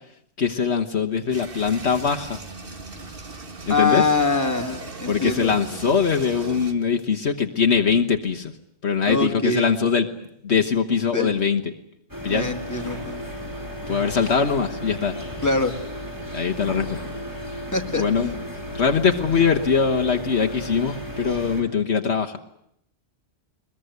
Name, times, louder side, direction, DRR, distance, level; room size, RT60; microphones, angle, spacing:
voice 1, 0.4-2.4 3.7-4.1 5.1-8.5 8.8-10.1 10.4-11.6 12.2-12.5 13.9-15.2 16.3-17.0 17.9-18.3 18.7-22.4, left 6 dB, 60° left, 4 dB, 1.5 m, -22 dB
sound 1, 1.3-6.7, right 3 dB, 50° right, 2.0 m, -38 dB
voice 2, 3.7-5.5 9.0-9.6 11.1-11.3 12.3-13.2 15.4-15.7 17.7-18.4, left 3 dB, 15° left, 4 dB, 2.2 m, -24 dB
sound 2, 12.1-21.6, equal, 15° right, 4.2 m, -34 dB
22.5 x 21.5 x 9.5 m, 0.75 s
omnidirectional pair, 1.3 m